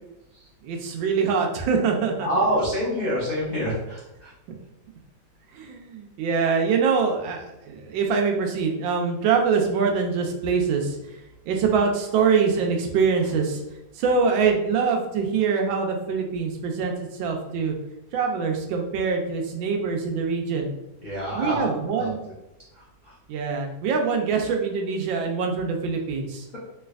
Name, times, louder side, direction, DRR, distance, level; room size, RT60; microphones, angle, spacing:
voice 1, 0.6-2.3 5.5-11.0 11.5-13.6 13.9-17.7 18.1-20.7 21.3-22.2 23.3-26.5, right 5 dB, 85° right, 2 dB, 1.4 m, -24 dB
voice 2, 2.2-4.3 21.0-22.1 22.8-23.1, equal, 60° left, -8 dB, 0.4 m, -27 dB
3.2 x 3.2 x 2.4 m, 0.94 s
omnidirectional pair, 2.1 m